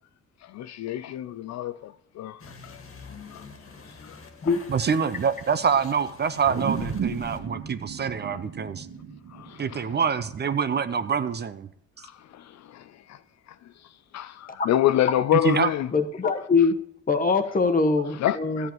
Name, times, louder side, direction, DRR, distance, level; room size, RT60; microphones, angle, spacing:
voice 1, 0.4-2.8 3.3-3.4 3.9-4.6 8.3-8.4 9.3-10.0 12.0-13.2 13.5-15.9 18.1-18.7, left 12 dB, 60° left, 0.4 m, -28 dB
sound 1, 2.4-7.4, left 4 dB, 45° left, 1.7 m, -46 dB
voice 2, 4.7-8.9 9.6-11.7 15.4-15.7, right 6 dB, 35° right, 0.5 m, -26 dB
sound 2, 6.4-11.2, right 6 dB, 50° right, 1.2 m, -34 dB
voice 3, 15.9-16.8 17.1-18.7, left 4 dB, 30° left, 1.1 m, -22 dB
13.0 x 8.2 x 3.0 m
cardioid pair, 90°, 30 cm